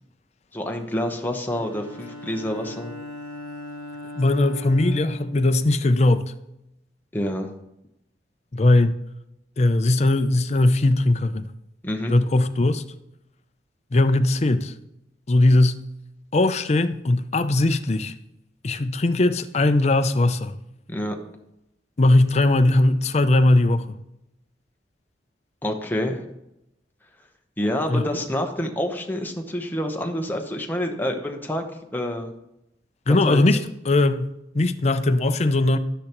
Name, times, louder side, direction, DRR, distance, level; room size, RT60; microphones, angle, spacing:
voice 1, 0.5-2.9 7.1-7.5 11.8-12.2 20.9-21.2 25.6-26.2 27.6-31.6 31.9-32.3 33.3-33.4, left 1 dB, 10° left, 0.9 m, -27 dB
Bowed string instrument, 1.5-6.1, left 1 dB, 20° right, 2.0 m, -39 dB
voice 2, 4.2-6.3 8.5-9.0 9.6-11.5 12.1-12.8 13.9-14.7 15.3-15.8 16.3-18.1 18.6-20.6 22.0-24.0 27.9-28.0 33.1-33.6 33.8-35.8, left 2 dB, 40° left, 0.5 m, -19 dB
11.5 x 10.0 x 3.0 m
head